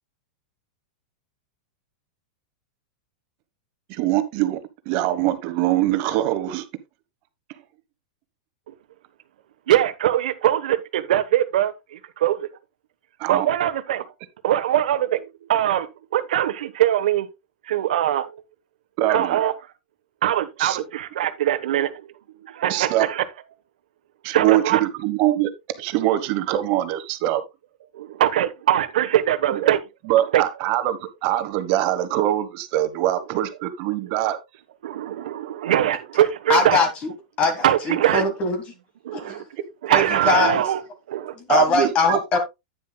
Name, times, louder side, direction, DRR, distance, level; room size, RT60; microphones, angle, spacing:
voice 1, 3.9-4.6 4.8-6.6 13.2-13.5 19.0-19.4 20.6-20.8 22.7-23.0 24.2-25.5 25.8-27.4 29.5-29.7 30.1-34.4 41.5-42.2, right 13 dB, 40° right, 1.2 m, -23 dB
voice 2, 9.7-12.5 13.3-14.1 14.4-17.3 17.7-18.3 19.1-19.5 20.2-22.0 22.4-23.2 24.3-24.8 27.9-29.8 30.3-30.4 34.8-36.8 37.6-38.2 39.0-39.4 39.8-40.8 41.1-41.3, right 12 dB, 75° right, 1.1 m, -22 dB
voice 3, 36.5-37.1 37.4-38.6 39.1-39.4 39.9-40.6 41.3-42.4, left 3 dB, 25° left, 1.7 m, -22 dB
9.7 x 9.6 x 2.3 m
supercardioid pair, 160°, 4 cm